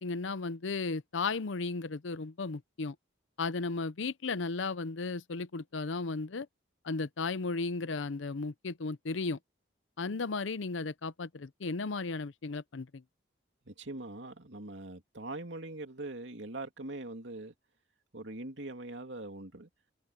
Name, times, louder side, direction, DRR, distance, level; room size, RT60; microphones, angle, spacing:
voice 1, 0.0-3.0 3.4-6.5 6.8-9.4 10.0-13.0, left 3 dB, 80° left, 0.7 m, -35 dB
voice 2, 13.7-17.5 18.1-19.7, right 2 dB, 70° right, 2.8 m, -42 dB
head